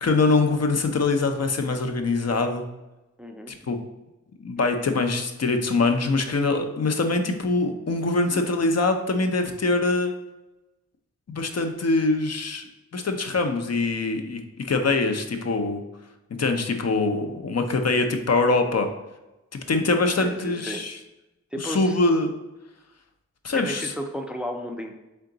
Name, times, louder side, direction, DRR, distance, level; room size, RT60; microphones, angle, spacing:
voice 1, 0.0-2.6 3.5-3.8 4.4-10.1 11.3-12.6 12.9-14.4 14.7-15.8 16.4-18.9 19.5-21.0 21.6-22.3 23.4-23.9, left 3 dB, 55° left, 6 dB, 0.6 m, -23 dB
voice 2, 3.2-3.5 20.2-20.8 21.5-22.0 23.5-24.9, equal, 5° right, 4 dB, 0.4 m, -33 dB
3.8 x 3.4 x 3.8 m, 1.0 s
wide cardioid pair, 80°, 31 cm